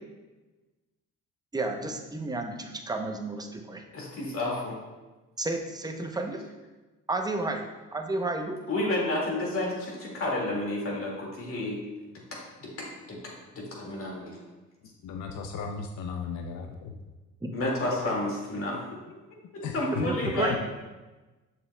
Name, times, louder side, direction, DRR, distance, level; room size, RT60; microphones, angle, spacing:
voice 1, 1.5-3.8 5.4-6.4 7.1-8.6 17.4-17.5 19.9-20.6, right 2 dB, 15° right, 4 dB, 0.7 m, -31 dB
voice 2, 3.9-4.8 8.7-11.8 12.3-14.4 17.5-18.8 19.3-20.6, left 2 dB, 45° left, -3 dB, 2.1 m, -31 dB
voice 3, 15.0-16.9 19.6-20.3, left 5 dB, 70° left, 4 dB, 0.6 m, -36 dB
6.8 x 6.8 x 2.2 m, 1.2 s
cardioid pair, 90°, 30 cm